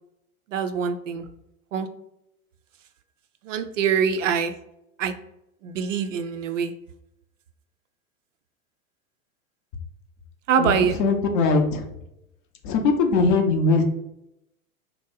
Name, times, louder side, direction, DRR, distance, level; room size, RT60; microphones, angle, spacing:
voice 1, 0.5-1.3 1.7-1.9 3.4-4.5 5.0-5.1 5.6-6.7 10.5-11.0, right 7 dB, 60° right, 8 dB, 0.5 m, -24 dB
voice 2, 10.6-11.9 12.6-13.8, left 3 dB, 35° left, 4 dB, 0.5 m, -21 dB
2.8 x 2.1 x 3.8 m, 0.82 s
figure-of-eight pair, 95°, 43 cm